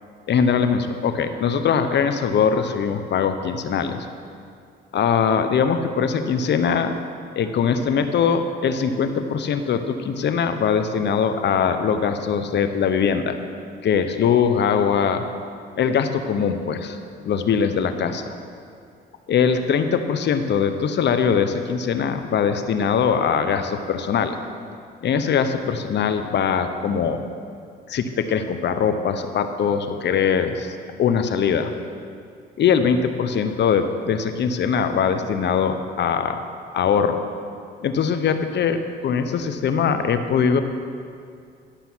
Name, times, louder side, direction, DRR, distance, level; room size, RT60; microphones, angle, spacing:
voice 1, 0.3-4.1 4.9-7.0 7.4-13.4 13.8-15.2 15.8-18.2 19.3-24.4 25.0-27.2 27.9-31.7 32.6-36.4 36.7-37.2 37.8-40.6, left 6 dB, 60° left, 9 dB, 0.8 m, -21 dB
11.5 x 6.9 x 6.1 m, 2.3 s
cardioid pair, 90°, 20 cm